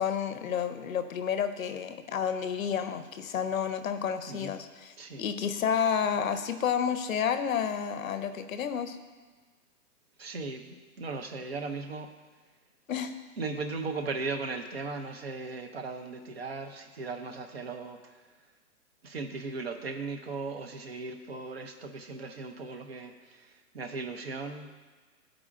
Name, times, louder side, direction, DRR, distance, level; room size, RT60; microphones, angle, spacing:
voice 1, 0.0-9.0 12.9-13.1, left 7 dB, 60° left, 9 dB, 0.6 m, -30 dB
voice 2, 10.2-12.1 13.4-18.0 19.0-24.7, right 3 dB, 40° right, 6 dB, 0.5 m, -37 dB
13.0 x 4.9 x 2.4 m, 1.4 s
hypercardioid pair, 170°, 48 cm